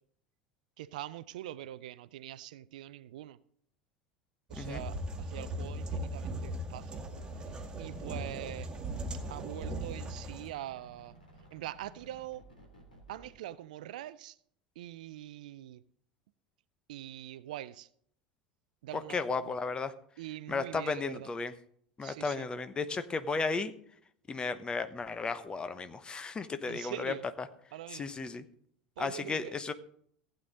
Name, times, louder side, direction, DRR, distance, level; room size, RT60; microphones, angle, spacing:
voice 1, 0.8-3.4 4.5-7.0 7.8-8.7 9.3-11.1 11.5-12.4 13.1-14.3 14.8-15.8 16.9-17.9 18.8-19.4 20.2-21.3 22.0-22.5 26.7-27.2 27.7-28.1 29.0-29.5, right 13 dB, 60° right, 17 dB, 0.5 m, -43 dB
voice 2, 4.5-4.8 18.9-19.9 20.5-21.5 22.0-23.7 24.3-27.5 27.9-28.4 29.0-29.7, left 4 dB, 20° left, 11 dB, 1.0 m, -34 dB
sound 1, 4.5-10.5, right 1 dB, 20° right, 2.0 m, -38 dB
sound 2, 7.1-13.3, right 1 dB, 80° left, 3.1 m, -56 dB
15.5 x 8.9 x 3.8 m, 0.64 s
figure-of-eight pair, 75°, 5 cm